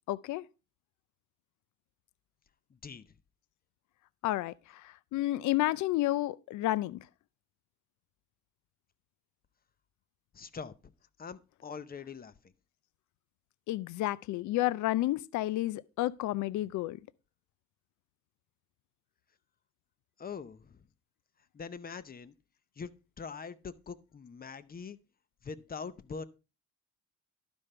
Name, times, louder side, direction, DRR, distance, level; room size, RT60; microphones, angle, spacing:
voice 1, 0.1-0.4 4.2-7.0 13.7-17.0, left 16 dB, 75° left, 0.5 m, -31 dB
voice 2, 2.7-3.1 10.3-10.9 11.2-12.3 20.2-20.8 21.5-22.3 22.8-22.9 23.2-25.0 25.4-26.2, left 5 dB, 30° left, 0.7 m, -43 dB
12.0 x 5.3 x 4.3 m
cardioid pair, 90°, 30 cm